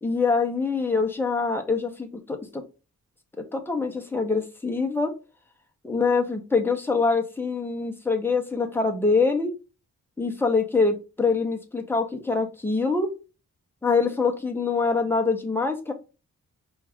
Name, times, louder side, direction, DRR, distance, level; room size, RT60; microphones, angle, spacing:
voice 1, 0.0-2.6 3.5-5.1 5.8-9.5 10.2-13.1 13.8-15.9, left 4 dB, 5° left, 4 dB, 0.6 m, -24 dB
4.3 x 2.3 x 3.4 m, 0.31 s
wide cardioid pair, 155°, 30 cm